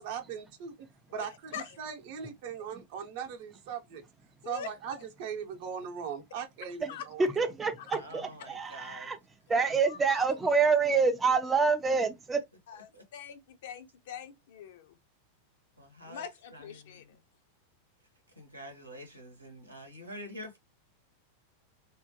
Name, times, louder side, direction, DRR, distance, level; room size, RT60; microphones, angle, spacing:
voice 1, 0.0-4.0 4.4-7.2, right 7 dB, 50° right, 0.8 m, -39 dB
voice 2, 6.8-9.2 9.5-12.4, right 4 dB, 15° right, 0.4 m, -27 dB
voice 3, 8.0-9.1 9.6-9.7 12.9-13.0 15.8-16.2 16.5-17.1 18.4-20.6, equal, 85° right, 0.9 m, -46 dB
voice 4, 9.9-10.4 12.7-12.9 13.1-15.0 16.0-17.0, left 8 dB, 55° left, 0.5 m, -43 dB
3.6 x 2.1 x 2.7 m
figure-of-eight pair, 90°, 0 cm